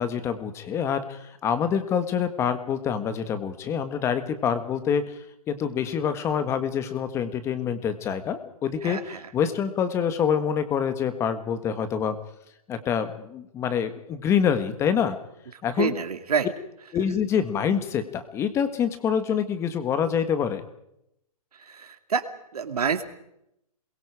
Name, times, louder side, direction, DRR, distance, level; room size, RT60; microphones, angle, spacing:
voice 1, 0.0-5.0 5.5-12.2 12.7-15.2 15.6-16.0 16.9-20.6, left 7 dB, 15° left, 10 dB, 1.7 m, -26 dB
voice 2, 8.8-9.2 15.8-16.5 21.7-22.3 22.5-23.0, right 6 dB, 75° right, 8 dB, 2.6 m, -27 dB
28.0 x 22.5 x 5.0 m, 0.80 s
hypercardioid pair, 155°, 20 cm